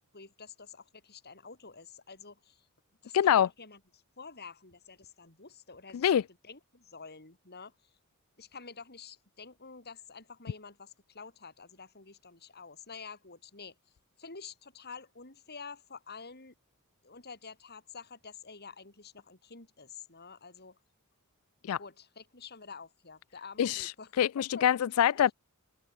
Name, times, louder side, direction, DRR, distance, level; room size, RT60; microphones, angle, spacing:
voice 1, 0.0-2.7 3.0-7.8 8.4-13.7 14.2-16.5 17.0-20.8 21.8-24.1 24.4-24.6 25.1-25.3, left 5 dB, 50° left, 6.1 m, -49 dB
voice 2, 3.1-3.5 5.9-6.2 21.6-21.8 23.6-25.3, left 9 dB, 75° left, 0.3 m, -25 dB
open air
head